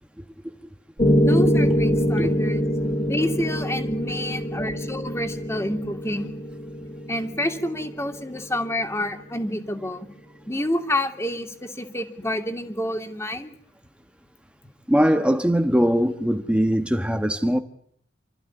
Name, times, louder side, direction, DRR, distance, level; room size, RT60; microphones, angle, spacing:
Piano, 1.0-9.1, equal, 35° left, 3.6 m, -24 dB
voice 1, 1.1-2.6 3.0-6.3 7.1-10.1 10.5-13.6 17.5-17.6, left 1 dB, 15° left, 2.7 m, -28 dB
voice 2, 14.9-17.6, equal, 5° right, 1.2 m, -21 dB
29.0 x 14.5 x 9.8 m
head